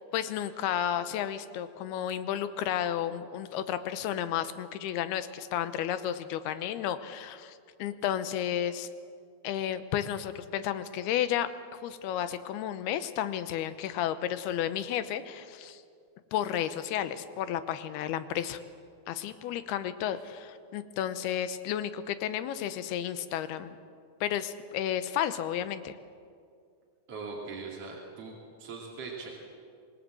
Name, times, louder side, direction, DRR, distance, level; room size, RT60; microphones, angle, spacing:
voice 1, 0.1-8.9 9.4-15.8 16.3-18.6 19.1-23.8 24.2-26.0, left 10 dB, 90° left, 11 dB, 2.9 m, -32 dB
voice 2, 27.1-28.3 28.6-29.3, right 4 dB, 40° right, -3 dB, 3.4 m, -40 dB
26.0 x 19.5 x 7.7 m, 2.3 s
omnidirectional pair, 4.4 m